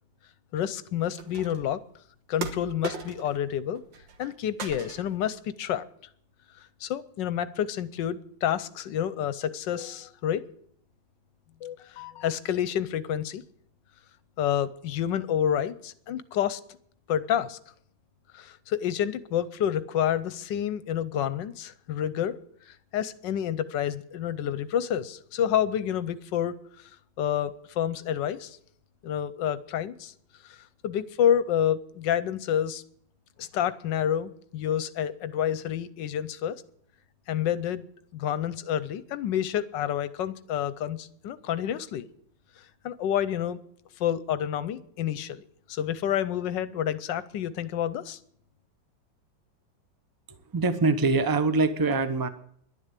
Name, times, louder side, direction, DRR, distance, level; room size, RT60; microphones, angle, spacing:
voice 1, 0.5-1.8 2.3-3.8 4.2-5.8 6.8-10.4 11.6-13.4 14.4-16.6 17.1-17.6 18.3-22.3 22.7-26.9 27.2-28.6 29.0-30.1 30.4-30.6 30.8-32.8 33.4-36.6 37.3-37.9 38.1-42.1 42.8-43.6 44.0-48.2, left 10 dB, 70° left, 15 dB, 1.3 m, -29 dB
sound 1, 1.2-1.7 2.4-3.4 3.7-4.3 4.6-5.3, right 5 dB, 70° right, 1.9 m, -38 dB
voice 2, 50.5-52.3, right 3 dB, 30° right, 10 dB, 0.4 m, -23 dB
11.5 x 11.0 x 8.2 m, 0.66 s
omnidirectional pair, 2.1 m